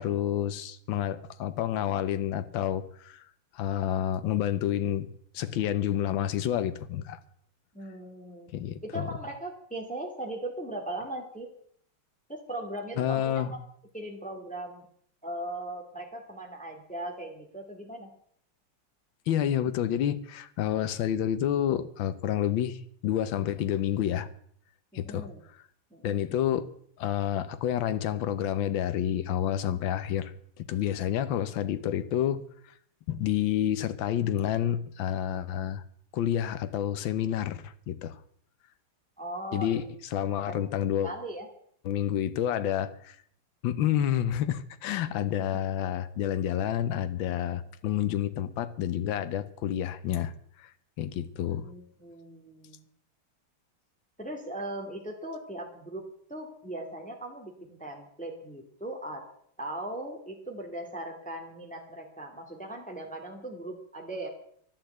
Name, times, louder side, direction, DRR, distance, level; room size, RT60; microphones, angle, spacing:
voice 1, 0.0-3.2 3.5-5.1 5.3-7.2 8.5-9.1 13.0-13.5 19.3-24.3 24.9-25.3 26.0-26.7 27.0-32.4 33.1-35.8 36.1-38.2 39.5-39.8 40.1-41.1 41.8-43.2 43.6-50.3 50.6-50.7 51.0-51.6, left 10 dB, 70° left, 12 dB, 1.6 m, -29 dB
voice 2, 7.7-8.5 8.8-11.5 12.3-13.6 13.9-14.9 15.2-18.1 24.9-25.4 25.9-26.3 39.2-39.8 40.5-40.6 41.0-41.5 51.5-52.9 54.2-56.0 56.3-59.3 59.6-64.3, right 1 dB, 5° left, 1 dB, 2.2 m, -39 dB
12.0 x 11.5 x 7.9 m, 0.64 s
omnidirectional pair, 2.4 m